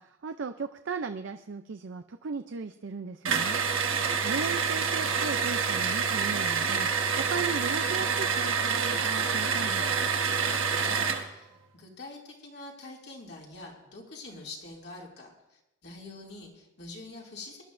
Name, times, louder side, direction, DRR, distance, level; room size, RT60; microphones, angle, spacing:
voice 1, 0.0-3.6 4.2-10.0, right 5 dB, 70° right, 8 dB, 0.5 m, -37 dB
sound 1, 3.2-11.3, right 5 dB, 85° right, 1.3 m, -27 dB
voice 2, 10.7-17.6, left 2 dB, 55° left, -2 dB, 2.6 m, -45 dB
22.0 x 11.5 x 2.6 m, 0.93 s
head